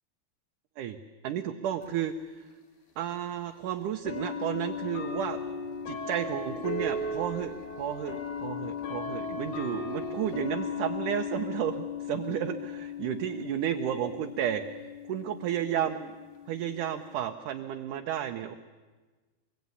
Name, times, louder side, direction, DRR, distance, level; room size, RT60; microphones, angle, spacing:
voice 1, 1.2-2.5 3.0-5.4 5.9-14.6 15.1-16.1 16.5-18.6, right 10 dB, 70° right, 4 dB, 2.2 m, -32 dB
sound 1, 1.8-1.9 3.0-3.1 4.1-17.3, left 5 dB, 85° left, 4.2 m, -37 dB
25.5 x 22.5 x 9.7 m, 1.3 s
omnidirectional pair, 4.5 m